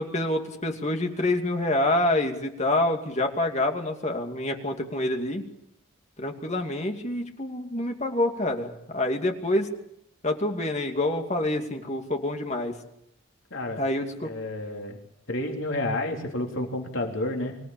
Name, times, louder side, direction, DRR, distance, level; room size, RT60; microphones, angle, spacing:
voice 1, 0.0-5.4 6.2-9.7 10.2-12.8 13.8-14.3, left 1 dB, 35° left, 4 dB, 2.5 m, -27 dB
voice 2, 13.5-13.8 14.2-15.0 15.3-17.6, left 1 dB, 65° left, 1 dB, 3.7 m, -30 dB
25.5 x 16.5 x 8.6 m, 0.78 s
head